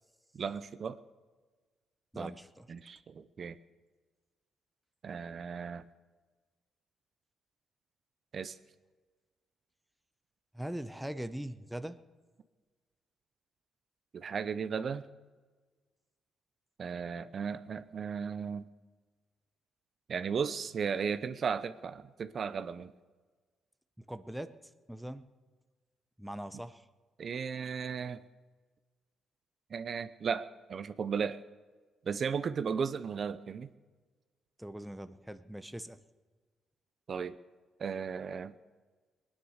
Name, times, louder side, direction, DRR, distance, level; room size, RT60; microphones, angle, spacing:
voice 1, 0.3-1.0 2.2-2.3 2.7-3.6 5.0-5.9 8.3-8.6 14.1-15.1 16.8-18.7 20.1-22.9 27.2-28.2 29.7-31.4 32.1-33.7 37.1-37.4 37.8-38.5, right 6 dB, 50° right, 12 dB, 0.6 m, -35 dB
voice 2, 2.1-2.7 3.4-3.5 10.5-12.0 24.0-24.6 24.9-25.3 26.2-26.9 34.6-36.0, right 1 dB, 5° right, 11 dB, 0.8 m, -41 dB
20.0 x 9.9 x 6.5 m, 1.4 s
cardioid pair, 90°, 0 cm